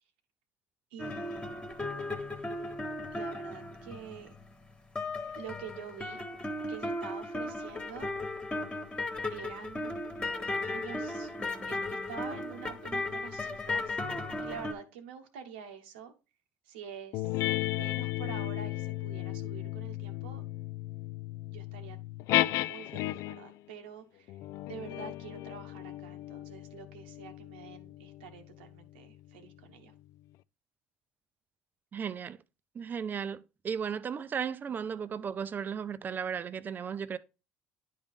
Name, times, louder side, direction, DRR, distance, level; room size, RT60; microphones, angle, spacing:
voice 1, 0.9-1.7 3.1-4.3 5.4-6.2 6.7-8.1 9.3-10.0 10.7-11.3 11.7-16.1 16.6-20.4 21.5-22.0 22.6-24.4 24.6-29.9, right 7 dB, 85° right, 1.1 m, -47 dB
sound 1, 1.0-4.6 5.0-14.7, left 2 dB, 20° left, 1.3 m, -36 dB
sound 2, 17.1-23.5 24.3-29.2, left 15 dB, 65° left, 0.3 m, -35 dB
voice 2, 31.9-32.4 32.7-37.2, right 7 dB, 35° right, 0.5 m, -35 dB
10.5 x 3.6 x 3.6 m
supercardioid pair, 80°, 5 cm